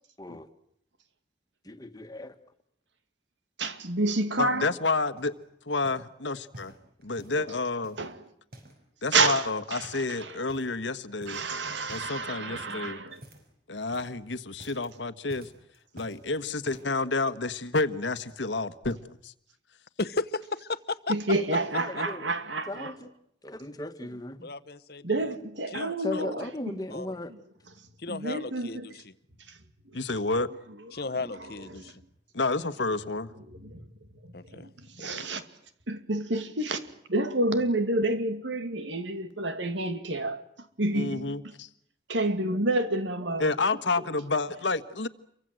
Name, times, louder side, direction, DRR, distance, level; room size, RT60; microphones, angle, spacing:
voice 1, 0.2-0.5 1.6-2.3 21.4-22.3 22.7-23.1 23.4-24.5 26.0-27.3, left 1 dB, 20° left, 1.8 m, -37 dB
voice 2, 3.6-4.7 7.4-7.5 8.0-8.2 9.1-10.4 11.3-13.2 21.1-22.9 25.0-26.7 28.1-28.9 31.7-31.9 33.5-33.9 34.2-35.5 35.9-40.4 40.8-41.4 42.1-43.5, right 2 dB, 85° right, 2.5 m, -29 dB
voice 3, 4.4-5.3 5.7-6.7 7.0-8.0 9.0-11.4 11.9-13.0 13.7-15.5 15.9-19.3 29.9-30.5 32.3-33.3 40.9-41.7 43.4-45.1, left 3 dB, 85° left, 1.4 m, -29 dB
sound 1, 4.7-5.4 5.8-6.1 6.5-7.5 7.8-8.8 9.1-9.5 9.8-10.1 10.5-10.9 11.2-11.5 11.8-12.1 12.5-13.6 13.8-14.2 14.5-14.9 15.3-16.2 16.6-17.0 17.7-17.8, right 1 dB, 55° right, 6.6 m, -50 dB
voice 4, 20.0-21.1 21.9-22.0 24.4-25.3 25.7-26.2 26.9-27.1 28.0-29.1 30.9-32.0 34.3-34.7 35.0-35.3, left 3 dB, 55° left, 1.0 m, -35 dB
28.5 x 24.0 x 7.8 m
head